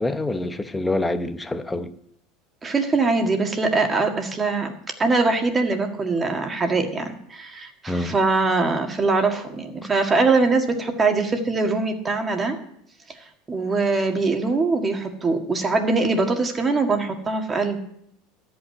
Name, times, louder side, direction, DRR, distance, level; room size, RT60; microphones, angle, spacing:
voice 1, 0.0-1.9 7.9-8.2, left 2 dB, 10° left, 0.8 m, -26 dB
voice 2, 2.6-12.6 13.5-17.8, right 3 dB, 20° right, 1.8 m, -22 dB
13.0 x 5.6 x 9.3 m
supercardioid pair, 125°, 0 cm